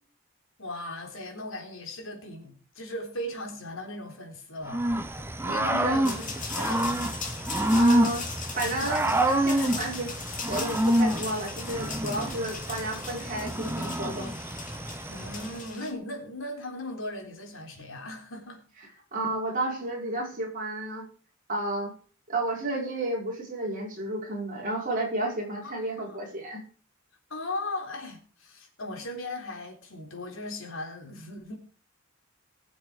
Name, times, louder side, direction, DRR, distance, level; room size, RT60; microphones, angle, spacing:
voice 1, 0.6-4.9 5.4-7.1 15.1-18.6 25.6-26.2 27.3-31.6, left 1 dB, 75° left, 3.8 m, -38 dB
Growling / Cricket, 4.7-15.6, right 1 dB, 10° right, 0.8 m, -27 dB
voice 2, 5.8-6.2 7.7-10.1 10.5-14.3 19.1-21.1 21.5-21.9 22.3-26.6, right 1 dB, 40° right, 5.3 m, -32 dB
sound 1, 6.0-15.9, left 5 dB, 40° left, 3.1 m, -39 dB
20.0 x 7.3 x 5.0 m
head